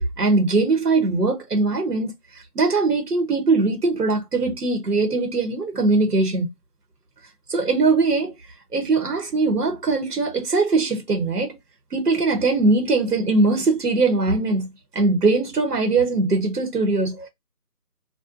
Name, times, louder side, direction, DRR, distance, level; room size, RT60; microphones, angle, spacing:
voice 1, 0.2-2.1 2.5-6.5 7.5-8.4 8.7-11.6 11.9-17.3, right 3 dB, 90° right, 1.0 m, -21 dB
2.5 x 2.2 x 2.4 m
figure-of-eight pair, 170°, 46 cm